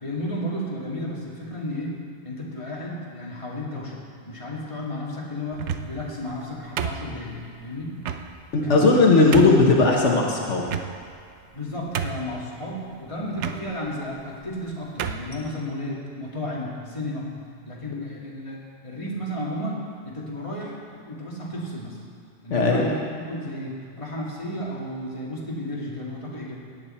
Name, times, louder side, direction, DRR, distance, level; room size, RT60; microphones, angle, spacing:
voice 1, 0.0-4.0 4.2-8.0 8.6-8.9 11.4-17.3 17.6-22.0 22.4-26.6, left 1 dB, 25° left, -4 dB, 2.0 m, -33 dB
sound 1, 5.5-6.1 6.8-7.4 8.0-8.2 8.8-8.9 9.3-9.7 10.6-11.2 11.6-11.7 11.9-12.4 13.4-13.6 14.4-14.6 15.0-15.3, right 8 dB, 75° right, 0.9 m, -30 dB
voice 2, 8.5-10.6 22.5-22.9, left 3 dB, 75° left, -2 dB, 1.6 m, -17 dB
17.0 x 8.8 x 4.3 m, 2.3 s
omnidirectional pair, 1.2 m